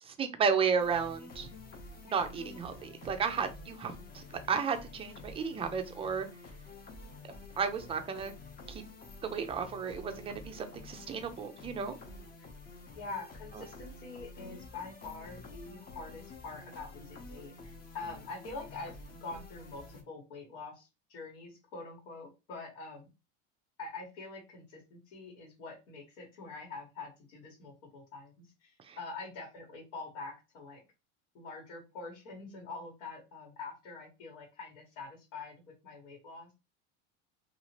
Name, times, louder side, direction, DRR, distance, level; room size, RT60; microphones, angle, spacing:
voice 1, 0.0-1.5 2.0-6.3 7.6-8.3 8.7-8.8 9.2-12.0 28.8-29.0, right 6 dB, 15° right, 6 dB, 0.3 m, -33 dB
sound 1, 0.8-20.0, left 3 dB, 25° left, 0.7 m, -49 dB
voice 2, 12.9-23.1 23.8-30.8 31.3-36.5, left 3 dB, 85° left, -2 dB, 1.4 m, -45 dB
2.7 x 2.4 x 3.0 m, 0.27 s
supercardioid pair, 130°, 35 cm